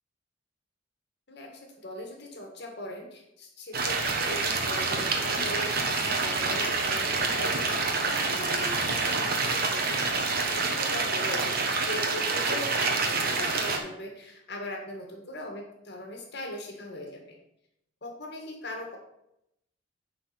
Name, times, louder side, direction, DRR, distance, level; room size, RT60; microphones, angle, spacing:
voice 1, 1.8-17.4 18.0-19.0, left 1 dB, 60° left, 1 dB, 1.8 m, -40 dB
sound 1, 3.7-13.8, right 4 dB, 50° right, 1.2 m, -27 dB
10.0 x 4.1 x 5.9 m, 0.81 s
head